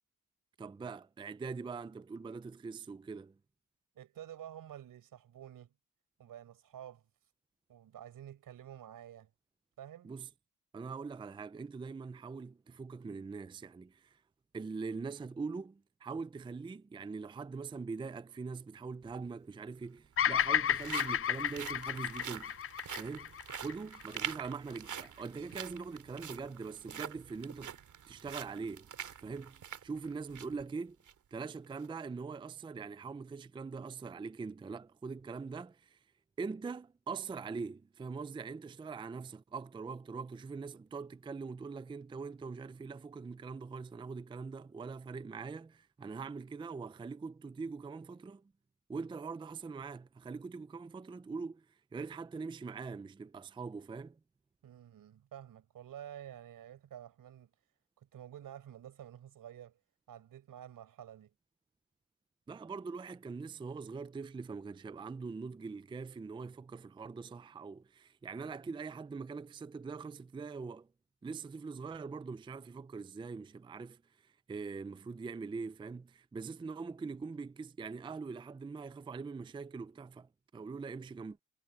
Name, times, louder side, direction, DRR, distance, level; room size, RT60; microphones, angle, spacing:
voice 1, 0.6-3.4 10.0-10.3 10.7-14.2 14.5-22.6 23.0-27.8 28.1-28.9 29.2-31.0 31.3-36.0 36.4-48.5 48.9-54.2 62.5-70.9 71.2-81.4, right 4 dB, 15° right, 0.4 m, -43 dB
voice 2, 4.0-5.7 6.2-7.0 7.7-9.3 9.8-10.1 54.6-57.5 58.0-59.8 60.1-61.3, right 10 dB, 85° right, 5.4 m, -50 dB
sound 1, 19.0-19.1 20.1-30.6 31.0-31.1 31.6-31.9, right 8 dB, 65° right, 2.7 m, -45 dB
Bird vocalization bird call bird song, 20.2-24.5, left 9 dB, 40° left, 0.5 m, -32 dB
wide cardioid pair, 140°, 33 cm